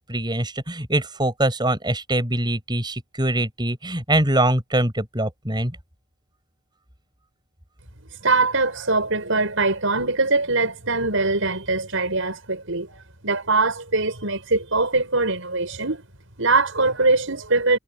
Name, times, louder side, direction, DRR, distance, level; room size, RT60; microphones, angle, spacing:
voice 1, 0.1-5.7, right 1 dB, 20° right, 6.8 m, -23 dB
voice 2, 8.2-16.0 16.4-17.8, right 3 dB, 65° right, 7.4 m, -22 dB
head